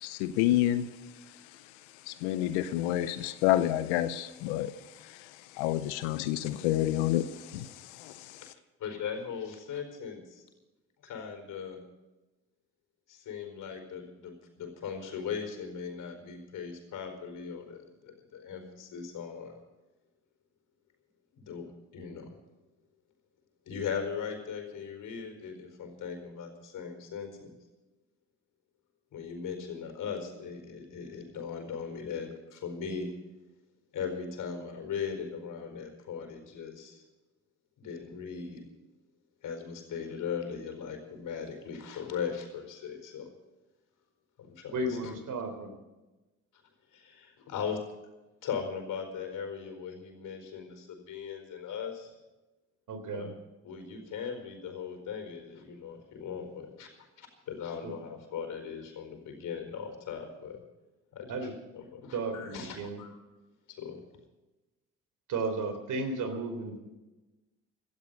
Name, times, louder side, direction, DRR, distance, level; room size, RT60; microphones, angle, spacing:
voice 1, 0.0-0.9 2.1-4.7 5.0-8.4, left 13 dB, 85° left, 0.8 m, -29 dB
voice 2, 8.8-10.4 11.0-11.8 13.1-19.6 21.3-22.3 23.7-27.5 29.1-33.1 33.9-37.0 37.8-38.6 39.4-43.3 44.4-45.1 46.9-47.8 48.4-52.1 53.1-53.3 53.6-60.6 61.1-63.2 63.7-64.0, left 6 dB, 65° left, 4.6 m, -39 dB
voice 3, 44.7-45.8 52.9-53.3 57.8-57.9 61.3-61.5 62.1-63.0 65.3-66.8, right 2 dB, 60° right, 3.6 m, -34 dB
17.0 x 13.0 x 5.4 m
hypercardioid pair, 60°, 34 cm